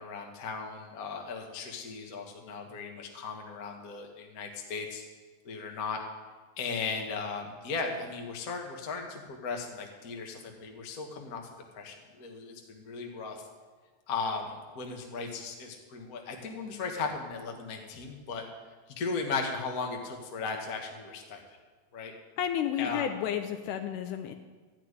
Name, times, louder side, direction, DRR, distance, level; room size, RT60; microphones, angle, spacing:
voice 1, 0.0-5.0 5.4-6.0 6.6-11.5 11.7-13.5 14.1-18.4 19.0-21.4 21.9-22.1 22.8-23.1, left 4 dB, 45° left, 2 dB, 1.2 m, -36 dB
voice 2, 22.4-24.3, left 9 dB, 80° left, 7 dB, 2.1 m, -31 dB
13.5 x 5.9 x 9.8 m, 1.4 s
omnidirectional pair, 3.8 m